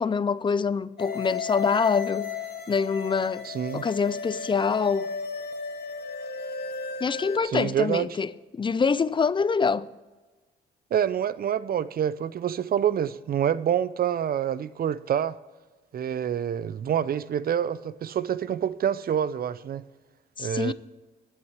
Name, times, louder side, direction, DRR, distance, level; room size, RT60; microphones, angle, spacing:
voice 1, 0.0-2.4 2.7-5.1 7.0-9.9 20.4-20.7, left 5 dB, 25° left, 0.4 m, -25 dB
sound 1, 1.0-7.4, left 6 dB, 55° left, 1.1 m, -34 dB
voice 2, 3.4-3.8 7.4-8.1 10.9-15.4 15.9-19.8 20.4-20.7, right 9 dB, 50° right, 0.6 m, -27 dB
9.9 x 7.9 x 8.2 m
cardioid pair, 90°, 20 cm